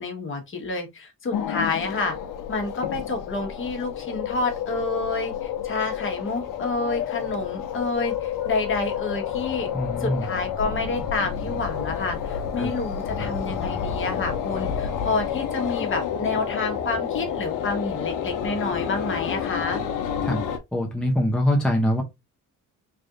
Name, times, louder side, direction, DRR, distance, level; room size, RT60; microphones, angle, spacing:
voice 1, 0.0-2.2 2.5-9.7 10.0-19.8, left 3 dB, 40° left, 1.2 m, -29 dB
sound 1, 1.3-20.6, left 8 dB, 80° left, 0.9 m, -29 dB
voice 2, 9.7-10.2 12.6-12.7 20.2-20.4 20.7-22.0, left 1 dB, 5° left, 0.6 m, -23 dB
3.4 x 2.6 x 3.6 m
cardioid pair, 145°, 31 cm